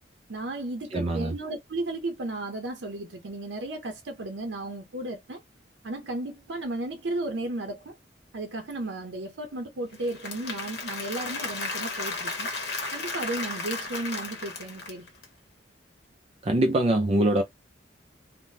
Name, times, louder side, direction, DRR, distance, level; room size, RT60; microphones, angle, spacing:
voice 1, 0.3-5.4 5.8-8.0 8.3-12.5 12.9-15.1, right 2 dB, 80° right, 0.6 m, -34 dB
voice 2, 0.9-1.3 16.4-17.4, right 1 dB, 35° right, 0.4 m, -23 dB
Applause / Crowd, 9.9-15.2, left 3 dB, 70° left, 0.9 m, -34 dB
3.4 x 2.1 x 2.7 m
head